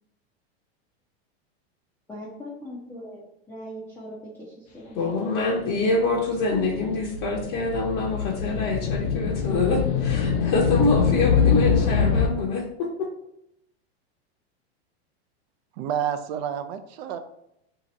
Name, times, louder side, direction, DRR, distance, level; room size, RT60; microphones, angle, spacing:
voice 1, 2.1-6.1, equal, 5° left, -7 dB, 0.5 m, -41 dB
voice 2, 5.0-13.1, left 3 dB, 45° left, -5 dB, 0.8 m, -25 dB
sound 1, 5.8-12.3, left 6 dB, 80° left, 0.7 m, -24 dB
voice 3, 15.8-17.2, right 9 dB, 65° right, 10 dB, 0.5 m, -29 dB
2.8 x 2.5 x 4.0 m, 0.79 s
supercardioid pair, 140°, 33 cm